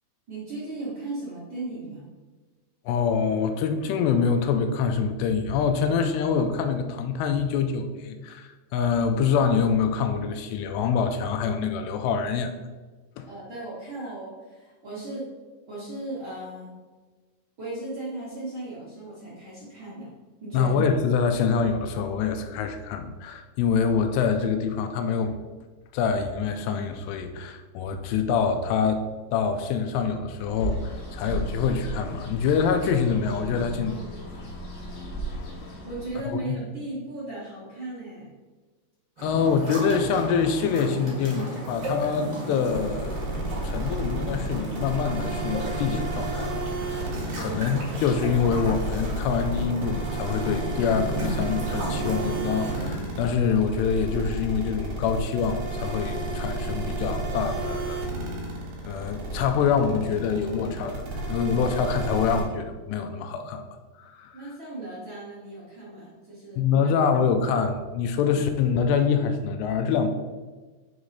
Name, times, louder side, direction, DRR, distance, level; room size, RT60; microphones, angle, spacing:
voice 1, 0.3-2.0 13.2-15.3 15.7-16.7 17.6-20.1 20.4-20.7 35.8-38.3 47.3-47.8 61.1-61.3 64.3-66.6, right 2 dB, 85° right, -9 dB, 1.1 m, -36 dB
voice 2, 2.9-12.5 13.2-13.3 20.5-25.4 25.9-29.0 29.3-34.0 35.3-35.4 36.2-36.6 39.2-43.4 43.6-47.1 47.4-58.0 58.3-58.4 58.8-61.0 61.3-63.6 64.0-64.4 66.6-70.1, left 6 dB, 85° left, 7 dB, 2.5 m, -25 dB
Bird, 30.4-36.3, right 1 dB, 45° left, 2.1 m, -35 dB
sound 1, 39.2-52.9, right 2 dB, 45° right, 2.0 m, -34 dB
sound 2, 42.7-62.4, right 1 dB, 60° right, 2.5 m, -31 dB
6.0 x 4.8 x 4.0 m, 1.3 s
omnidirectional pair, 5.1 m